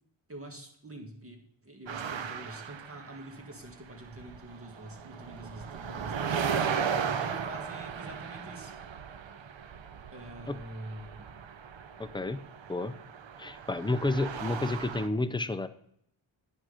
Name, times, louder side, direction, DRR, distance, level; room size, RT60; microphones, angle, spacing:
voice 1, 0.3-6.9 7.2-8.7 10.1-11.4, right 1 dB, 25° right, 3 dB, 1.8 m, -46 dB
sound 1, 1.9-3.7 3.9-15.1, right 7 dB, 65° right, 0.8 m, -36 dB
voice 2, 12.0-12.4 12.7-12.9 13.4-15.7, left 2 dB, 10° left, 10 dB, 0.4 m, -30 dB
9.7 x 6.3 x 4.9 m, 0.70 s
wide cardioid pair, 130°, 49 cm